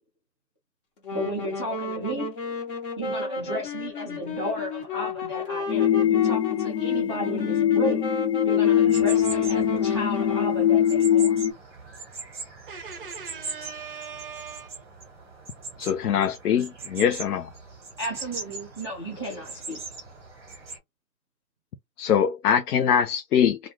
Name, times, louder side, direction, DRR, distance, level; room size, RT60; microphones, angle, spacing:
Wind instrument woodwind instrument, 1.0-10.6, left 3 dB, 35° left, 0.9 m, -34 dB
voice 1, 1.1-2.6 3.0-8.0 8.4-11.4 18.0-19.8, equal, 20° left, 0.5 m, -33 dB
sound 1, 5.7-11.5, left 10 dB, 90° left, 1.1 m, -22 dB
sound 2, 8.8-20.8, right 4 dB, 15° right, 1.0 m, -40 dB
voice 2, 12.7-14.7, right 6 dB, 35° right, 0.6 m, -39 dB
voice 3, 15.8-17.5 22.0-23.6, left 8 dB, 65° left, 0.5 m, -23 dB
2.4 x 2.4 x 3.1 m
hypercardioid pair, 160°, 49 cm